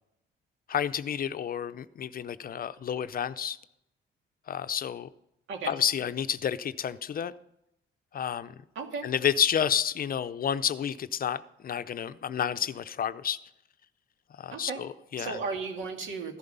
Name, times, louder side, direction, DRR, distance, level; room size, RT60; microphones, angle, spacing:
voice 1, 0.7-3.6 4.5-5.1 5.7-7.3 8.1-8.5 9.0-13.4 14.4-15.4, left 8 dB, 45° left, 13 dB, 0.6 m, -30 dB
voice 2, 8.7-9.1 14.5-14.8 15.2-16.4, right 4 dB, 75° right, 4 dB, 2.2 m, -35 dB
14.5 x 11.0 x 5.5 m, 0.84 s
cardioid pair, 90°, 20 cm